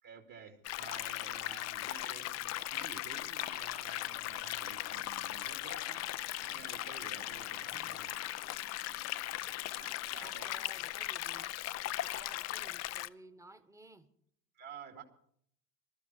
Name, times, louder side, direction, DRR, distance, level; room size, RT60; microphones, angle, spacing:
voice 1, 0.0-8.2 9.8-10.5 14.5-15.0, right 7 dB, 40° right, 4 dB, 2.4 m, -52 dB
sound 1, 0.6-13.1, left 15 dB, 35° left, 0.6 m, -38 dB
sound 2, 3.2-10.0, right 8 dB, 75° right, 1.6 m, -62 dB
voice 2, 7.7-8.0 10.2-11.5 12.0-14.1, right 2 dB, 5° right, 10 dB, 1.4 m, -56 dB
20.5 x 13.0 x 4.6 m, 0.66 s
hypercardioid pair, 80°, 48 cm